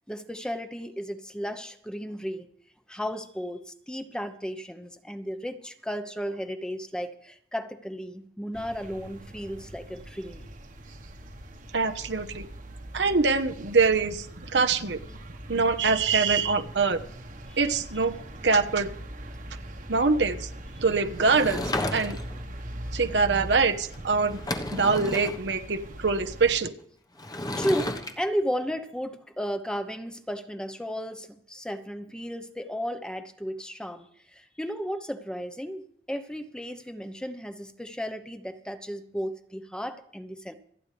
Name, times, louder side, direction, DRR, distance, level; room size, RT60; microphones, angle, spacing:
voice 1, 0.1-2.5 2.9-10.5 17.5-17.6 27.2-40.5, equal, 5° left, 8 dB, 0.9 m, -34 dB
sound 1, 8.5-26.6, right 1 dB, 50° right, 1.3 m, -42 dB
voice 2, 11.7-12.5 12.9-14.3 14.5-15.0 15.5-17.0 17.6-18.2 18.4-18.9 19.9-20.5 20.8-21.6 21.9-22.2 22.9-24.4 24.7-26.7, right 4 dB, 85° right, 7 dB, 1.1 m, -24 dB
Sliding door / Wood, 21.2-22.4 23.9-24.0 24.3-25.4 27.2-28.1, left 1 dB, 25° left, 1.2 m, -32 dB
27.0 x 9.3 x 3.4 m, 0.64 s
head